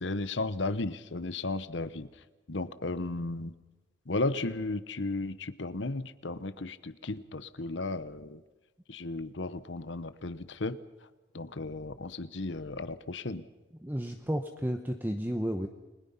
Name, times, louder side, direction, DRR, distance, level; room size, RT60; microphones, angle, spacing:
voice 1, 0.0-2.1 2.5-3.5 4.1-8.4 8.9-10.8 11.3-13.4, left 2 dB, 70° left, 14 dB, 1.0 m, -34 dB
voice 2, 13.8-15.7, equal, 10° right, 5 dB, 0.9 m, -32 dB
30.0 x 21.5 x 5.7 m, 1.1 s
head